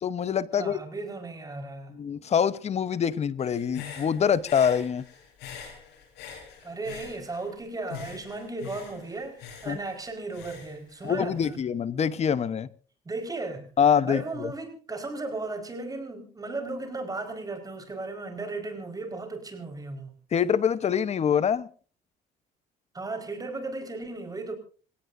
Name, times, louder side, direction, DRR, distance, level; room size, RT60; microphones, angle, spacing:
voice 1, 0.0-0.8 1.9-5.0 9.7-9.8 11.0-12.7 13.8-14.5 20.3-21.7, left 7 dB, 40° left, 1.0 m, -25 dB
voice 2, 0.5-2.0 6.6-11.6 13.0-13.7 14.0-20.1 22.9-24.5, right 3 dB, 20° right, 4.8 m, -35 dB
Human voice / Breathing, 3.4-7.6 7.9-11.5, left 8 dB, 90° left, 7.6 m, -44 dB
26.5 x 17.5 x 2.7 m
cardioid pair, 110°, 17 cm